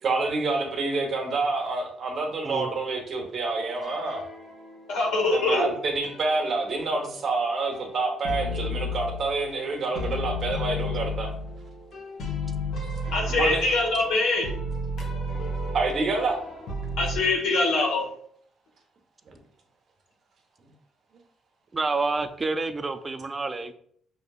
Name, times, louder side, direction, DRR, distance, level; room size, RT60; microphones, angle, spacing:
voice 1, 0.0-4.2 5.3-11.3 13.3-13.7 15.7-16.4, right 3 dB, 40° right, 0.9 m, -27 dB
sound 1, 3.8-5.0 5.5-7.4 7.7-9.7 9.9-17.2, left 1 dB, 55° left, 1.1 m, -33 dB
voice 2, 4.9-5.6 13.1-14.5 17.0-18.1, left 3 dB, 85° left, 1.2 m, -23 dB
voice 3, 21.7-23.7, right 3 dB, 20° right, 0.3 m, -28 dB
6.4 x 2.7 x 2.3 m
cardioid pair, 155°, 0 cm